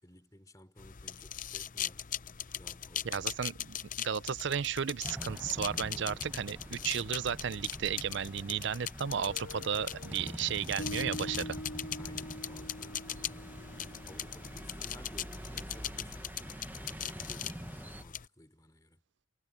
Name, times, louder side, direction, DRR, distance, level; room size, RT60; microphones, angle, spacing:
voice 1, 0.0-2.1 2.5-3.6 11.9-19.0, left 1 dB, 15° left, 3.3 m, -56 dB
sound 1, 0.8-18.3, left 10 dB, 40° left, 0.7 m, -41 dB
voice 2, 3.0-11.5, right 7 dB, 55° right, 0.5 m, -34 dB
sound 2, 5.0-18.0, right 1 dB, 10° right, 1.0 m, -45 dB
Guitar, 9.0-15.7, left 1 dB, 70° left, 2.7 m, -46 dB
head